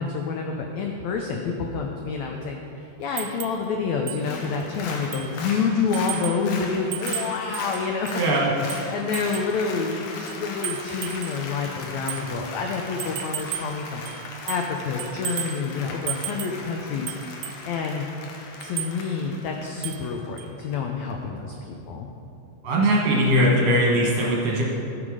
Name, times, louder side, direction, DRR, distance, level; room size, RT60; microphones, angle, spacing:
voice 1, 0.0-8.2 8.7-14.0 14.4-18.1 18.6-22.1, left 5 dB, 85° left, 2 dB, 1.5 m, -28 dB
sound 1, 3.2-3.6 4.1-4.2 4.6-4.7 5.1-5.4 5.9-6.4 6.9-8.2 8.7-9.6 10.3-11.4 12.1-12.3 13.0-13.8 14.1-14.7 15.0-15.6 16.1-16.6 17.1-17.6 18.6-19.0 19.8-20.1 20.4-20.5, right 12 dB, 80° right, 2.1 m, -34 dB
Applause, 4.1-20.8 21.1-21.2, left 3 dB, 70° left, 2.0 m, -38 dB
voice 2, 8.1-8.5 22.6-24.6, equal, 60° right, -3 dB, 2.0 m, -20 dB
14.5 x 5.8 x 4.8 m, 2.8 s
omnidirectional pair, 4.0 m